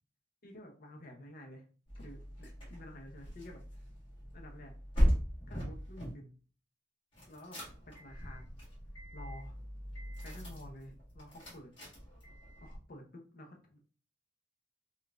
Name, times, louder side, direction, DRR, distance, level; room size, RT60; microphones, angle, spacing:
voice 1, 0.4-1.6 2.0-3.6 4.3-4.7 5.5-6.4 7.3-7.6 7.9-8.5 9.1-9.5 10.2-11.7 12.6-13.8, left 1 dB, 50° left, 2 dB, 0.7 m, -51 dB
sound 1, 1.9-6.1 7.1-12.8, equal, 30° left, 1.4 m, -37 dB
5.0 x 2.3 x 2.4 m, 0.39 s
head